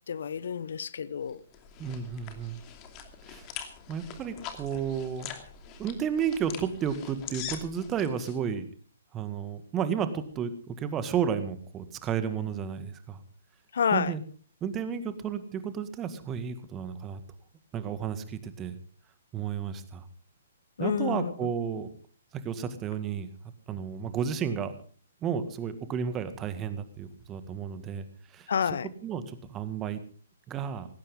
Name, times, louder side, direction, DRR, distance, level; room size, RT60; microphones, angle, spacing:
voice 1, 0.1-1.4 13.7-14.1 20.8-21.3 28.5-28.9, left 7 dB, 60° left, 0.8 m, -29 dB
sound 1, 1.3-8.4, left 8 dB, 30° left, 2.7 m, -43 dB
voice 2, 1.8-2.6 3.3-3.5 3.9-5.4 5.8-8.7 9.1-13.2 13.9-14.2 14.6-17.2 17.7-18.8 19.3-20.1 20.8-21.9 22.3-23.3 23.7-24.7 25.2-28.1 28.3-28.8 29.0-30.0 30.5-30.9, right 7 dB, 20° right, 1.9 m, -32 dB
19.0 x 16.5 x 3.8 m
figure-of-eight pair, 125°, 0 cm